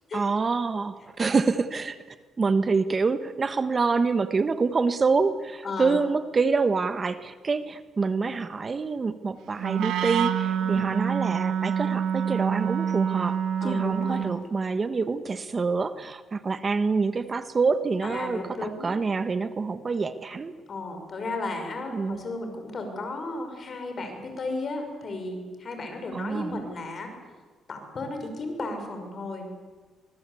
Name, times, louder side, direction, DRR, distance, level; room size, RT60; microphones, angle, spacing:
voice 1, 0.1-2.0 2.4-13.4 13.6-20.5 21.9-22.2 26.1-26.6, right 4 dB, 35° right, 12 dB, 1.2 m, -26 dB
voice 2, 5.6-6.0 10.6-10.9 13.6-14.2 18.0-18.9 20.7-27.1 27.7-29.5, left 2 dB, 45° left, 5 dB, 6.3 m, -34 dB
Wind instrument woodwind instrument, 9.6-14.4, right 8 dB, 80° right, 1.7 m, -27 dB
24.0 x 21.0 x 8.5 m, 1.4 s
cardioid pair, 90°, 0 cm